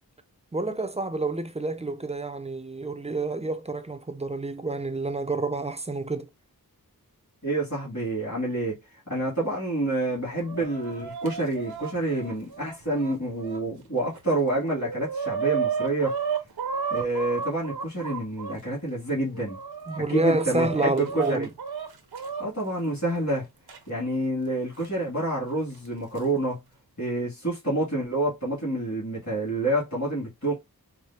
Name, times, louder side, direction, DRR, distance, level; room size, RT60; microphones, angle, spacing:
voice 1, 0.5-6.3 19.9-21.5, right 2 dB, 20° right, 0.4 m, -28 dB
voice 2, 7.4-8.8 9.1-16.1 16.9-19.6 20.1-21.5 22.4-23.5 23.9-26.6 27.0-30.5, right 2 dB, 45° left, 2.2 m, -28 dB
Chicken rooster, 10.1-13.6 14.2-14.3 14.5-18.6 19.2-22.4 23.7-23.8 24.8-24.9 25.9-26.2, right 6 dB, 85° right, 0.7 m, -33 dB
4.8 x 2.0 x 2.8 m
wide cardioid pair, 60°, 37 cm